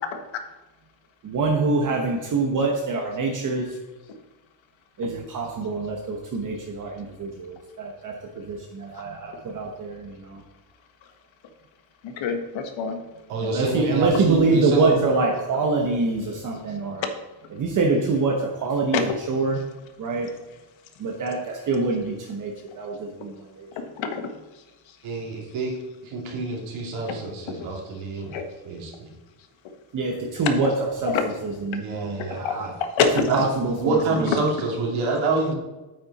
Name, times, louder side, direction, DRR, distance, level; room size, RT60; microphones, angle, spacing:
voice 1, 1.2-3.7 5.0-10.4 13.5-17.0 17.5-19.0 19.3-19.6 20.0-20.3 21.0-23.7 29.9-30.7 31.0-31.1 31.7-32.7 33.3-34.3, right 3 dB, 40° right, 1 dB, 1.1 m, -25 dB
voice 2, 12.0-13.0 13.9-14.0 18.0-18.1 18.9-19.2 19.5-19.6 23.8-24.3 24.5-25.0 25.6-25.7 27.0-27.2 27.5-27.8 28.3-28.4 30.3-30.8 31.1-31.4 32.3-32.5 33.0-33.5 33.9-34.8, left 5 dB, 65° left, 6 dB, 1.5 m, -27 dB
voice 3, 13.3-15.0 25.0-25.7 26.0-28.3 28.6-29.1 31.8-32.7 33.3-33.4 33.8-35.5, right 3 dB, 70° right, -1 dB, 3.0 m, -27 dB
8.8 x 8.8 x 4.2 m, 1.1 s
cardioid pair, 170°, 50 cm